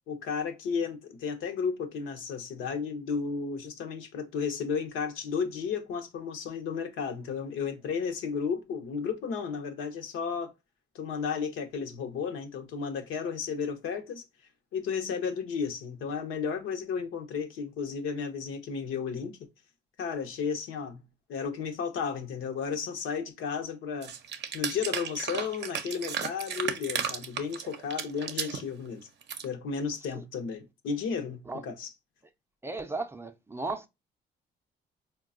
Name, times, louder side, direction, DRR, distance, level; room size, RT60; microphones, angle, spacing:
voice 1, 0.1-10.5 10.9-14.2 14.7-19.5 20.0-21.0 21.3-24.1 24.5-29.1 29.4-31.9, left 6 dB, 90° left, 0.7 m, -33 dB
sound 1, 24.0-28.6 29.0-29.4, right 7 dB, 60° right, 0.5 m, -34 dB
voice 2, 32.6-33.9, right 3 dB, 10° right, 0.4 m, -35 dB
4.0 x 2.2 x 2.3 m
cardioid pair, 90°, 20 cm